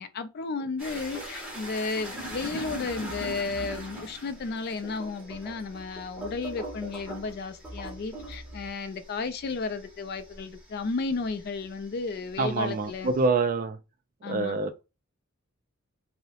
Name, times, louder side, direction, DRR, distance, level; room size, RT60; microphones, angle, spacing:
voice 1, 0.0-13.1 14.2-14.6, left 4 dB, 45° left, 0.3 m, -33 dB
sound 1, 0.8-11.7 12.1-13.2, right 1 dB, 5° right, 0.6 m, -40 dB
voice 2, 12.4-13.8 14.2-14.8, right 3 dB, 40° right, 0.3 m, -26 dB
2.7 x 2.0 x 2.7 m
head